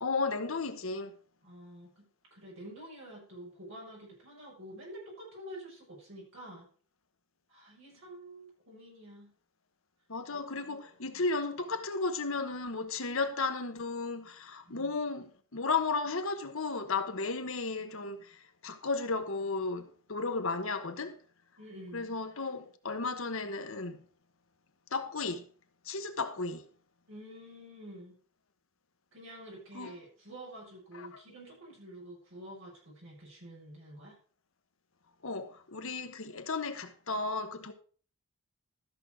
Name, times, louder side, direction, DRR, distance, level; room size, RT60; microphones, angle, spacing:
voice 1, 0.0-1.1 10.1-21.2 21.9-24.0 24.9-25.5 25.8-26.7 29.7-29.9 30.9-31.2 35.2-37.7, left 3 dB, 70° left, 1.2 m, -34 dB
voice 2, 1.4-6.7 7.5-9.3 10.3-10.8 11.1-11.2 14.7-14.9 21.6-22.1 27.1-28.2 29.1-34.2, right 1 dB, 65° right, 6.7 m, -48 dB
14.0 x 6.4 x 4.6 m
head